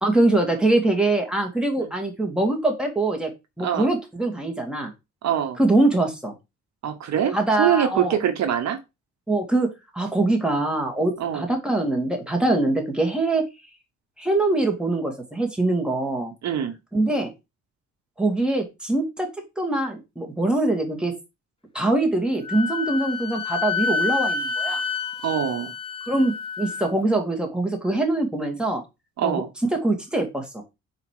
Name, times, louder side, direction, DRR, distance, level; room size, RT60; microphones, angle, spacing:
voice 1, 0.0-3.3 3.6-4.9 5.6-6.4 7.3-8.2 9.3-13.4 14.2-16.3 16.9-17.3 18.2-19.3 19.6-21.1 21.7-24.8 26.1-28.8 29.2-29.4 29.7-30.6, right 2 dB, 5° right, 2.2 m, -23 dB
voice 2, 5.2-5.6 6.8-8.8 11.2-11.5 16.4-16.8 25.2-25.7 29.2-29.5, right 9 dB, 65° right, 1.0 m, -24 dB
Wind instrument woodwind instrument, 22.4-26.9, left 5 dB, 20° left, 0.9 m, -28 dB
4.9 x 4.1 x 4.9 m
cardioid pair, 90°, 30 cm